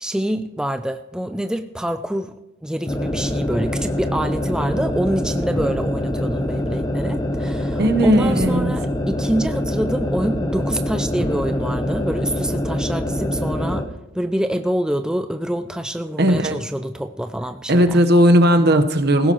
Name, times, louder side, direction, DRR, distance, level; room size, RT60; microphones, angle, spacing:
voice 1, 0.0-2.3 2.6-13.9 14.1-18.0, right 1 dB, 5° right, 8 dB, 0.3 m, -26 dB
sound 1, 2.9-13.9, left 1 dB, 20° left, 0.7 m, -24 dB
voice 2, 7.8-8.8 16.2-16.6 17.7-19.3, right 1 dB, 60° right, 7 dB, 1.0 m, -16 dB
18.0 x 15.5 x 3.0 m, 0.96 s
head